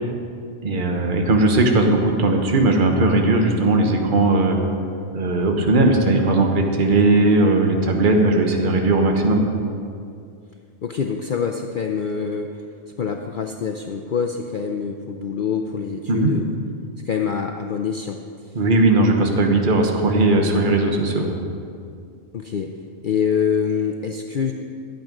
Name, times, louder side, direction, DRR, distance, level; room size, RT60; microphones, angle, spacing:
voice 1, 0.6-4.6 5.1-9.5 16.1-16.3 18.5-21.4, right 2 dB, 40° right, 2 dB, 1.2 m, -18 dB
voice 2, 10.8-12.5 13.0-16.4 17.0-18.2 22.3-22.7 23.0-24.5, left 6 dB, 55° left, 3 dB, 0.6 m, -25 dB
13.0 x 9.0 x 5.3 m, 2.4 s
omnidirectional pair, 1.3 m